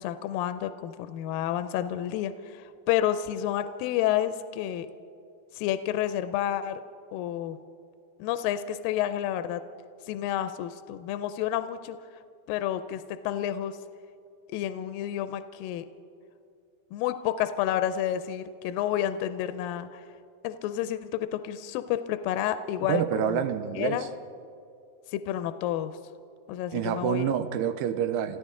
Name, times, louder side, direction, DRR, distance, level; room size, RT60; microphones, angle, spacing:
voice 1, 0.0-4.9 5.6-6.8 7.1-7.6 8.2-9.6 10.1-12.0 12.5-13.8 14.5-15.9 16.9-20.0 20.4-23.4 23.8-24.1 25.1-25.9 26.5-27.3, left 11 dB, 85° left, 11 dB, 2.2 m, -30 dB
voice 2, 22.9-24.1 26.7-28.4, right 9 dB, 85° right, 10 dB, 2.3 m, -27 dB
28.0 x 14.0 x 3.7 m, 2.5 s
omnidirectional pair, 4.0 m